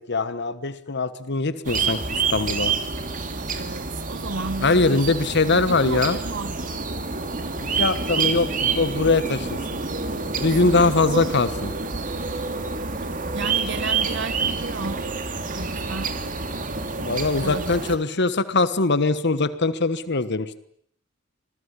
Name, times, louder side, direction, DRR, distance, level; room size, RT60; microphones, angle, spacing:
voice 1, 0.0-2.0 2.3-2.7 4.6-6.2 7.7-9.6 10.4-11.7 17.0-20.6, left 3 dB, 55° left, 13 dB, 1.3 m, -22 dB
sound 1, 1.6-18.0, right 4 dB, 40° right, 2.9 m, -28 dB
voice 2, 3.5-5.1 5.5-6.7 10.5-11.4 13.3-15.1 15.5-16.1 17.4-17.8, right 3 dB, 60° right, 14 dB, 1.3 m, -33 dB
26.5 x 20.0 x 10.0 m, 0.68 s
head